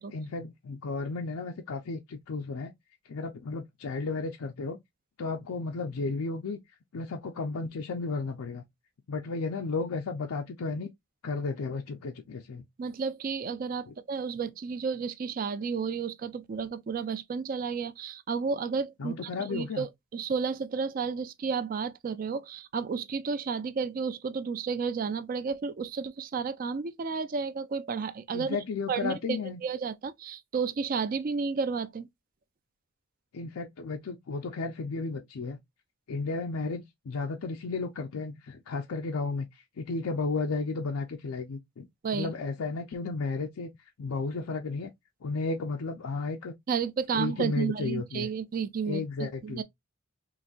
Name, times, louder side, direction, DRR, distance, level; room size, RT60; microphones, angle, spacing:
voice 1, 0.1-2.7 3.1-4.8 5.2-6.6 6.9-8.6 9.1-10.9 11.2-12.6 19.0-19.9 28.3-29.6 33.3-35.6 36.1-39.5 39.8-41.9 42.1-43.7 44.0-44.9 45.2-46.5 47.1-48.3 48.9-49.6, left 3 dB, 85° left, 0.5 m, -33 dB
voice 2, 12.8-32.1 42.0-42.3 46.7-49.6, right 5 dB, 40° right, 0.4 m, -32 dB
3.9 x 2.5 x 2.3 m
head